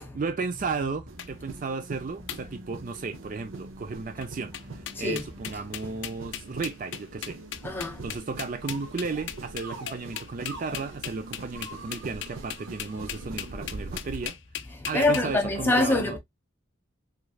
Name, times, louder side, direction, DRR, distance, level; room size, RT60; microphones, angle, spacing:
voice 1, 0.0-7.4 8.0-14.4 14.9-16.2, right 4 dB, 40° right, 0.4 m, -34 dB
sound 1, 1.1-14.3, right 2 dB, 75° right, 0.7 m, -43 dB
sound 2, 1.2-1.3 2.3-2.4 2.9-3.2 4.2-4.3 4.5-15.2, left 11 dB, 60° left, 0.4 m, -37 dB
voice 2, 7.6-8.0 14.9-16.2, left 2 dB, 10° left, 0.8 m, -24 dB
sound 3, 8.6-9.3 9.6-11.0 11.5-13.3 13.9-14.2 14.9-15.1, right 2 dB, 60° right, 1.2 m, -46 dB
3.6 x 3.2 x 2.2 m
head